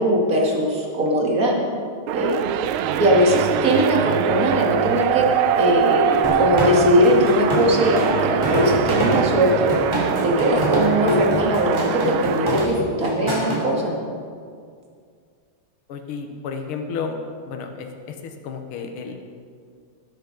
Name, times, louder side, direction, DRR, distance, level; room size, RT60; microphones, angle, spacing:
voice 1, 0.0-1.6 2.1-2.5 3.0-5.3 5.5-9.7 10.2-13.9, equal, 40° right, -1 dB, 2.3 m, -20 dB
sound 1, 2.1-12.7, right 10 dB, 75° right, 1.4 m, -23 dB
sound 2, 6.2-13.6, equal, 10° right, 3.0 m, -24 dB
voice 2, 15.9-17.2 17.5-19.3, left 5 dB, 80° left, 4 dB, 1.9 m, -32 dB
19.5 x 8.1 x 5.2 m, 2.2 s
omnidirectional pair, 2.4 m